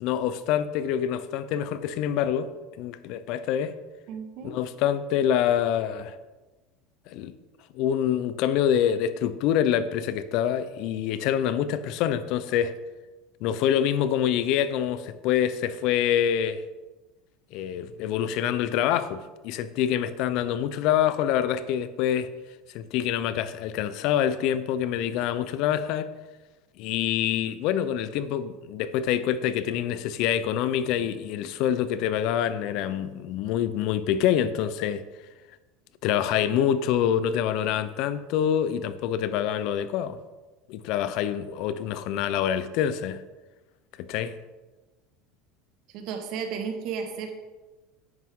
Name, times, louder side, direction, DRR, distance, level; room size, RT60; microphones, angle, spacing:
voice 1, 0.0-2.5 2.8-3.7 4.4-6.1 7.1-7.3 7.7-12.7 13.4-16.6 17.5-22.3 22.7-26.1 26.8-35.0 36.0-40.2 40.7-43.2 44.1-44.3, left 10 dB, 65° left, 0.8 m, -26 dB
voice 2, 4.1-4.6 45.9-47.4, right 6 dB, 60° right, 1.8 m, -33 dB
10.5 x 9.3 x 3.8 m
supercardioid pair, 105°, 0 cm